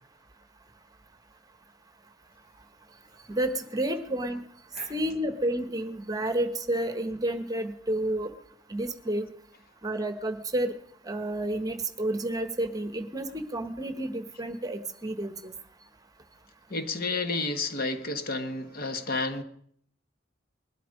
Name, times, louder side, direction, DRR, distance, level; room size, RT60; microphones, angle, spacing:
voice 1, 3.3-4.4 4.9-8.3 8.7-9.3 9.8-10.7 11.1-15.5, right 1 dB, 20° right, 1.1 m, -30 dB
voice 2, 16.7-19.4, left 3 dB, 50° left, 1.2 m, -31 dB
20.0 x 12.0 x 5.2 m
head